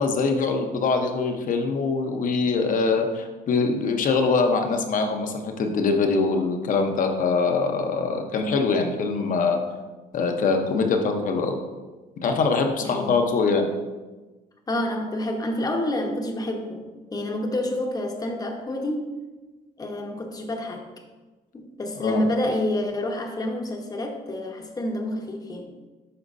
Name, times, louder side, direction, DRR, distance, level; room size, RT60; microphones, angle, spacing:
voice 1, 0.0-9.6 10.1-11.6 12.2-13.7 22.0-22.2, left 4 dB, 50° left, 4 dB, 1.0 m, -23 dB
voice 2, 12.8-13.2 14.7-16.8 17.1-19.1 19.8-20.9 21.5-25.7, left 1 dB, 20° left, 3 dB, 1.0 m, -28 dB
11.5 x 4.4 x 2.7 m, 1.2 s
cardioid pair, 110°, 17 cm